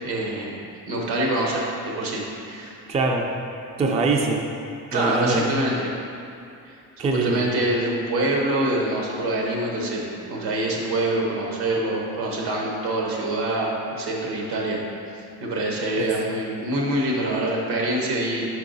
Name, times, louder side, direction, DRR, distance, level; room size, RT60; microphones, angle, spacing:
voice 1, 0.0-2.7 4.9-5.9 6.7-6.8 7.2-14.8 15.4-18.5, right 1 dB, 75° right, -1 dB, 1.2 m, -25 dB
voice 2, 2.9-3.3 3.8-4.5 4.9-5.6 7.0-7.5 16.0-16.1, right 3 dB, 20° right, 1 dB, 0.3 m, -23 dB
5.3 x 4.7 x 3.9 m, 2.5 s
cardioid pair, 125°, 37 cm